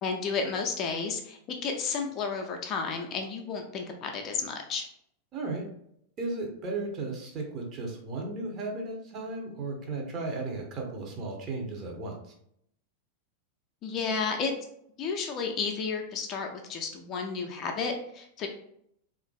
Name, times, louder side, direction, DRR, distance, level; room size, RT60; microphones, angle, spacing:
voice 1, 0.0-4.9 13.8-14.5 15.0-18.5, left 5 dB, 35° left, 3 dB, 0.4 m, -32 dB
voice 2, 5.3-5.6 6.2-12.3, right 3 dB, 30° right, 0 dB, 0.7 m, -35 dB
3.1 x 2.4 x 2.3 m, 0.72 s
figure-of-eight pair, 90°, 0 cm